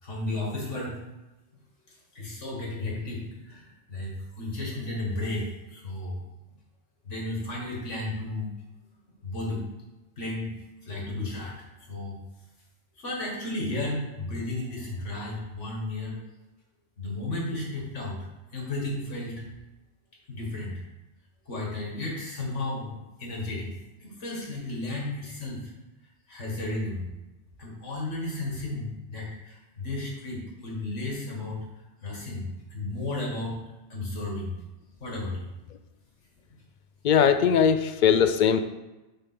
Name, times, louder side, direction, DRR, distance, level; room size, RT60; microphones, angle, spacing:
voice 1, 0.0-1.0 2.1-3.2 3.5-3.6 3.9-6.2 7.0-8.5 9.2-9.7 10.2-10.5 10.8-11.6 11.9-12.1 13.0-16.1 17.0-18.2 18.5-19.4 20.3-20.7 21.5-23.7 24.0-25.6 26.3-27.1 27.6-31.6 32.0-33.6 33.9-34.5 35.0-35.4, left 2 dB, 85° left, -3 dB, 2.3 m, -33 dB
voice 2, 37.0-38.6, left 7 dB, 60° left, 9 dB, 0.5 m, -20 dB
6.6 x 3.6 x 5.9 m, 1.0 s
omnidirectional pair, 1.2 m